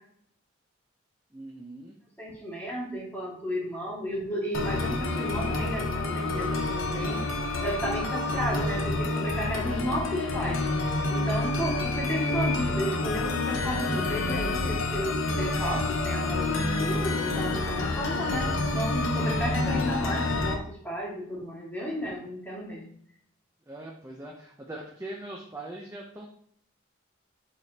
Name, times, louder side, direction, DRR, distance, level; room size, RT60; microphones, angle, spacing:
voice 1, 1.3-2.0 23.7-26.3, right 1 dB, 15° right, -1 dB, 0.7 m, -41 dB
voice 2, 2.2-7.2 7.6-10.7 11.1-22.9, equal, 10° left, -5 dB, 2.1 m, -33 dB
sound 1, 4.5-20.5, left 2 dB, 90° left, 0.9 m, -28 dB
7.6 x 5.0 x 2.9 m, 0.64 s
head